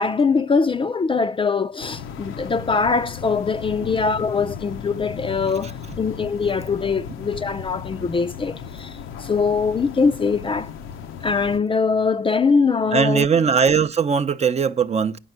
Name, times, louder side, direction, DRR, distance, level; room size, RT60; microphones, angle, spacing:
voice 1, 0.0-10.7 11.2-13.3, left 5 dB, 25° left, 0.5 m, -22 dB
sound 1, 1.8-11.6, left 7 dB, 90° left, 0.7 m, -36 dB
voice 2, 12.9-15.2, right 6 dB, 35° right, 0.6 m, -20 dB
8.6 x 6.0 x 7.8 m
cardioid pair, 90°, 20 cm